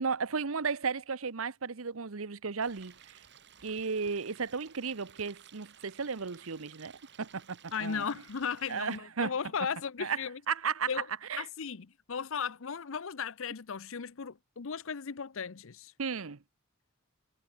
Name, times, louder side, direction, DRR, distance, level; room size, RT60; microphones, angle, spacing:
voice 1, 0.0-3.1 3.6-6.9 7.2-8.0 8.7-9.3 10.0-10.2 10.5-10.9 11.3-11.5 16.0-16.4, right 5 dB, 80° right, 0.9 m, -34 dB
Stream, 2.6-9.0, right 8 dB, 55° right, 7.2 m, -57 dB
voice 2, 7.7-10.4 10.9-11.1 11.4-15.9, left 6 dB, 70° left, 0.7 m, -36 dB
head